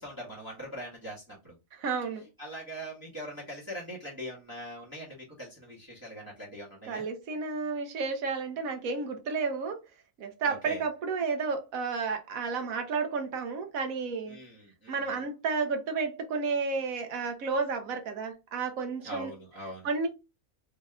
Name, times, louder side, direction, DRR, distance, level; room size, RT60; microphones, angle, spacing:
voice 1, 0.0-1.5 2.4-7.0 10.5-10.8 14.3-15.2 19.0-19.9, equal, 15° right, 1.4 m, -42 dB
voice 2, 1.7-2.3 6.8-9.8 10.2-14.4 14.9-19.3 19.8-20.1, right 4 dB, 90° right, 1.2 m, -32 dB
4.1 x 3.4 x 2.3 m
omnidirectional pair, 1.4 m